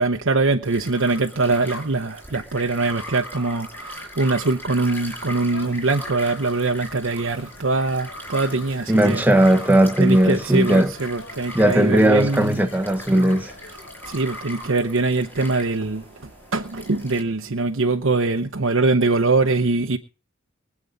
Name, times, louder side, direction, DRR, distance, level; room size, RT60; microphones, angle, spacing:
voice 1, 0.0-9.2 10.0-12.7 14.0-16.0 16.5-20.0, right 3 dB, 65° right, 0.9 m, -22 dB
sound 1, 0.6-17.2, equal, 10° left, 6.0 m, -39 dB
sound 2, 4.8-14.4, left 2 dB, 70° left, 3.9 m, -44 dB
voice 2, 8.9-10.9 11.5-13.5, right 1 dB, 10° right, 1.3 m, -17 dB
24.0 x 8.5 x 4.0 m
head